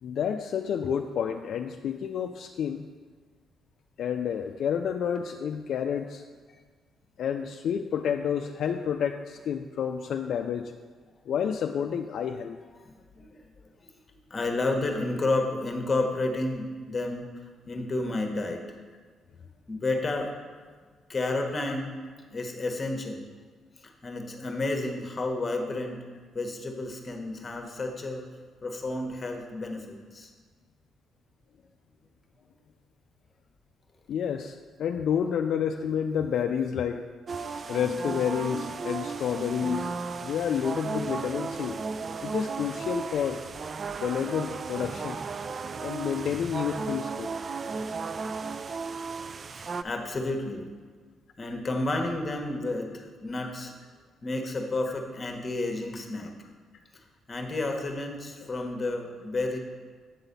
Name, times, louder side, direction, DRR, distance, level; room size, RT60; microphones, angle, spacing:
voice 1, 0.0-2.8 4.0-6.2 7.2-10.7 11.3-12.6 21.7-21.8 34.1-37.0 37.7-39.9 40.2-41.8 42.2-43.4 44.0-45.2 45.8-47.3, left 8 dB, 70° left, 5 dB, 0.3 m, -29 dB
voice 2, 12.4-17.3 17.7-18.8 19.7-20.3 21.1-22.0 22.3-23.2 23.8-26.0 26.3-28.2 28.6-30.3 35.0-35.1 35.8-35.9 36.2-36.3 49.6-50.7 51.4-53.7 54.2-56.3 56.9-59.6, left 2 dB, 30° left, 3 dB, 1.2 m, -31 dB
sound 1, 37.3-49.8, right 4 dB, 40° right, 0.3 m, -35 dB
8.1 x 3.9 x 6.7 m, 1.5 s
cardioid pair, 90°, 0 cm